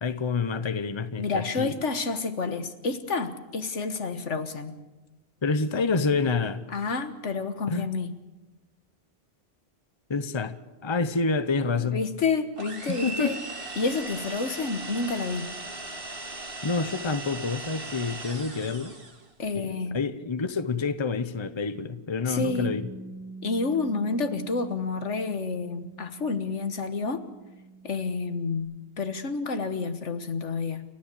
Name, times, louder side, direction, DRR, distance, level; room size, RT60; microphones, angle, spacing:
voice 1, 0.0-1.7 5.4-6.7 7.7-7.9 10.1-10.6 10.8-12.0 12.9-13.3 16.6-19.0 19.5-22.8, left 4 dB, 25° left, 12 dB, 0.9 m, -28 dB
voice 2, 1.2-4.8 6.7-8.1 11.8-13.4 13.8-15.5 19.4-20.0 22.3-22.7 23.4-27.2 27.8-28.7 29.0-30.8, left 4 dB, 80° left, 10 dB, 1.7 m, -29 dB
sound 1, 12.6-19.3, right 2 dB, 50° right, 2.4 m, -38 dB
Bass guitar, 22.3-28.6, right 3 dB, 45° left, 5.5 m, -45 dB
29.5 x 13.5 x 8.4 m, 1.1 s
omnidirectional pair, 1.2 m